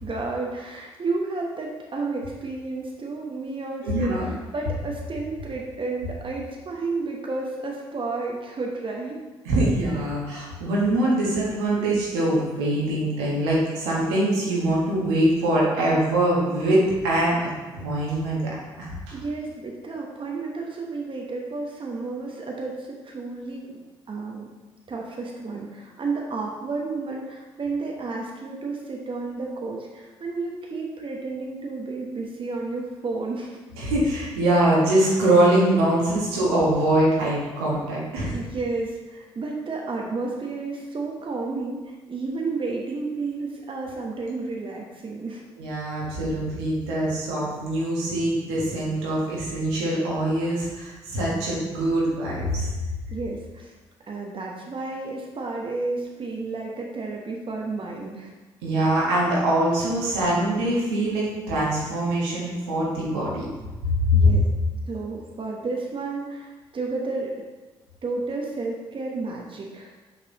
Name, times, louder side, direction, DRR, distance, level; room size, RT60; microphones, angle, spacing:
voice 1, 0.0-9.2 19.1-24.5 24.9-33.6 38.3-45.4 53.1-53.7 54.1-58.3 64.1-64.5 64.9-67.3 68.0-69.9, right 3 dB, 40° right, -1 dB, 1.1 m, -31 dB
voice 2, 3.8-4.3 9.4-17.4 17.7-18.4 18.8-19.2 33.8-38.3 45.6-52.7 58.6-63.5 63.9-64.3, right 1 dB, 80° right, -5 dB, 1.4 m, -23 dB
5.9 x 5.7 x 3.0 m, 1.2 s
hypercardioid pair, 40°, 14 cm